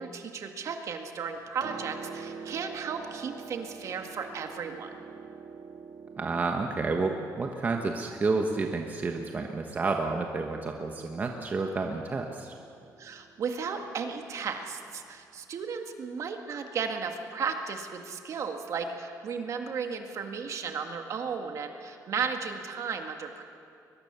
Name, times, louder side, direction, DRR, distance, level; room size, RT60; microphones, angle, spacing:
voice 1, 0.0-4.9 13.0-23.4, right 6 dB, 50° right, 5 dB, 1.9 m, -35 dB
Piano, 1.3-15.1 16.2-16.3, right 6 dB, 70° right, 2.2 m, -47 dB
voice 2, 6.2-12.5, right 3 dB, 25° right, 3 dB, 1.2 m, -30 dB
22.0 x 22.0 x 6.9 m, 2.5 s
cardioid pair, 155°, 7 cm